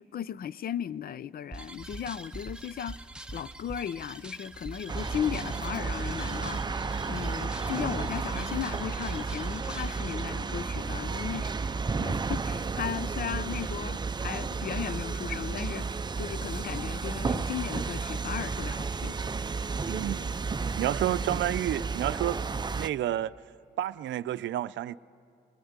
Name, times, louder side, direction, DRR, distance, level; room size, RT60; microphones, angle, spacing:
voice 1, 0.0-3.0 3.3-19.2, left 9 dB, 50° left, 0.5 m, -36 dB
sound 1, 1.5-10.2, right 1 dB, 5° right, 1.0 m, -43 dB
sound 2, 4.9-22.9, right 4 dB, 20° right, 0.6 m, -32 dB
voice 2, 19.9-20.3 20.8-22.4 22.7-23.3 23.8-25.0, right 13 dB, 70° right, 0.6 m, -30 dB
23.5 x 20.0 x 9.5 m
cardioid pair, 90°, 20 cm